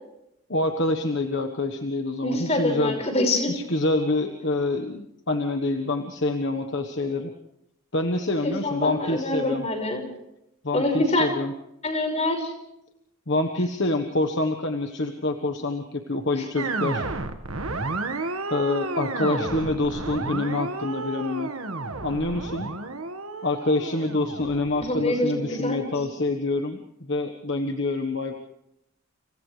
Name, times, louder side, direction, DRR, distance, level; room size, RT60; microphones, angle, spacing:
voice 1, 0.5-3.0 3.5-7.3 7.9-9.7 10.6-11.5 13.3-17.0 18.5-21.5 22.0-22.7 23.4-28.3, left 2 dB, 55° left, 5 dB, 1.3 m, -26 dB
voice 2, 2.2-3.5 8.4-10.0 10.7-11.3 11.8-12.5 19.1-19.5 24.8-25.9, left 1 dB, 30° left, 3 dB, 5.6 m, -25 dB
sound 1, 16.6-25.9, right 3 dB, 75° right, 1.7 m, -32 dB
30.0 x 28.0 x 3.3 m, 0.82 s
head